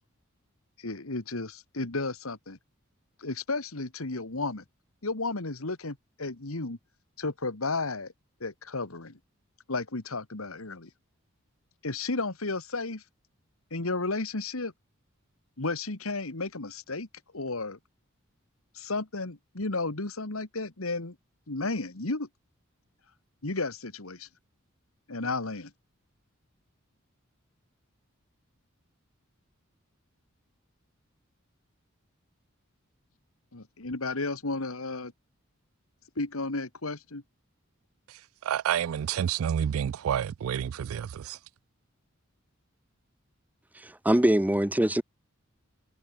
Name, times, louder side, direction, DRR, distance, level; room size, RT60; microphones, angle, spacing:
voice 1, 0.8-2.6 3.2-4.6 5.0-6.8 7.2-8.1 8.4-9.2 9.7-10.9 11.8-13.0 13.7-14.7 15.6-17.1 17.3-17.8 18.7-21.2 21.5-22.3 23.4-24.3 25.1-25.7 33.5-35.1 36.2-37.2, left 3 dB, 85° left, 2.1 m, -33 dB
voice 2, 38.4-41.4, right 9 dB, 80° right, 0.3 m, -29 dB
voice 3, 43.8-45.0, right 1 dB, 10° right, 0.6 m, -23 dB
head